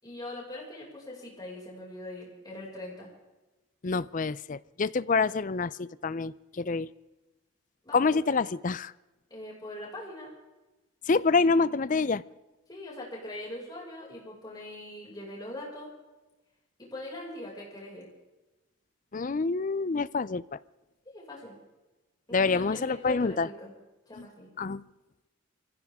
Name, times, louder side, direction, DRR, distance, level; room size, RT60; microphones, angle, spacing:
voice 1, 0.0-3.1 7.8-8.4 9.3-10.3 12.7-15.9 16.8-18.1 21.1-21.6 22.3-23.7 24.1-24.5, left 1 dB, 20° left, -3 dB, 5.8 m, -42 dB
voice 2, 3.8-6.9 7.9-8.9 11.1-12.2 19.1-20.6 22.3-23.5 24.2-24.3 24.6-24.8, left 4 dB, 40° left, 18 dB, 0.5 m, -27 dB
24.5 x 16.0 x 3.6 m, 1.1 s
head